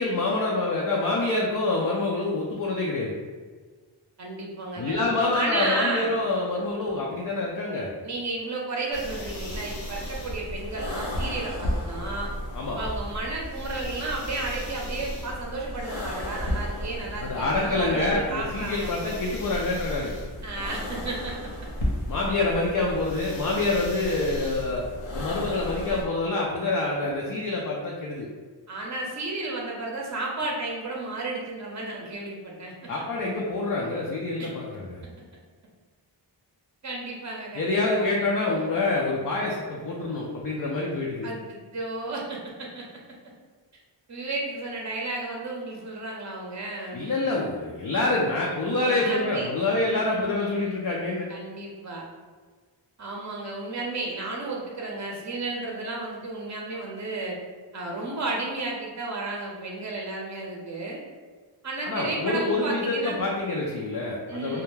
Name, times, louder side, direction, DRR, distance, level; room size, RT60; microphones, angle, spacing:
voice 1, 0.0-3.1 4.8-7.9 12.5-12.8 17.2-20.1 22.1-24.9 25.1-28.3 32.9-35.0 37.6-41.3 46.9-51.3 61.8-64.6, left 2 dB, 50° left, -3 dB, 0.4 m, -26 dB
voice 2, 4.2-6.2 8.0-12.3 12.8-19.1 20.4-21.3 28.7-32.7 34.4-34.5 36.8-38.0 41.2-42.8 44.1-47.0 48.8-49.5 49.9-50.8 51.3-52.0 53.0-57.4 57.7-61.0 61.6-63.3 64.3-64.6, right 2 dB, 40° right, -2 dB, 0.6 m, -33 dB
sound 1, 8.9-26.0, left 1 dB, 90° left, 0.7 m, -34 dB
2.3 x 2.1 x 3.1 m, 1.5 s
wide cardioid pair, 45°, 45 cm